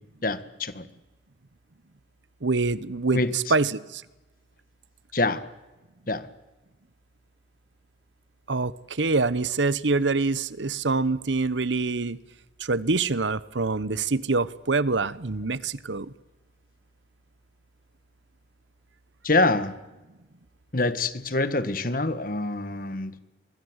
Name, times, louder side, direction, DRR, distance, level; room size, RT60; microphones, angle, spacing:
voice 1, 0.2-0.9 3.1-3.5 5.1-5.4 6.1-6.3 19.2-19.7 20.7-23.1, left 2 dB, 50° left, 12 dB, 1.7 m, -25 dB
voice 2, 2.4-4.0 8.5-12.2 12.6-16.1, right 3 dB, 75° right, 17 dB, 1.0 m, -25 dB
29.0 x 24.0 x 8.1 m, 1.1 s
head